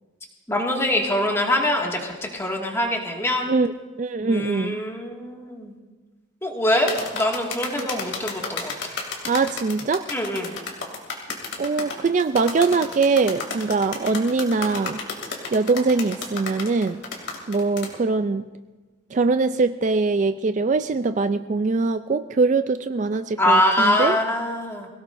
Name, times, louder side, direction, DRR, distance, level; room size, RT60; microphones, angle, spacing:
voice 1, 0.5-3.5 4.2-5.7 6.4-9.0 10.1-10.5 23.4-24.9, left 1 dB, 15° left, -1 dB, 2.0 m, -24 dB
voice 2, 4.0-4.8 7.8-7.9 9.2-10.0 11.6-15.0 15.5-17.0 17.5-18.5 19.1-24.2, right 4 dB, 40° right, 11 dB, 0.3 m, -22 dB
sound 1, 6.9-17.9, left 4 dB, 70° left, 2.8 m, -32 dB
23.0 x 17.5 x 2.6 m, 1.3 s
head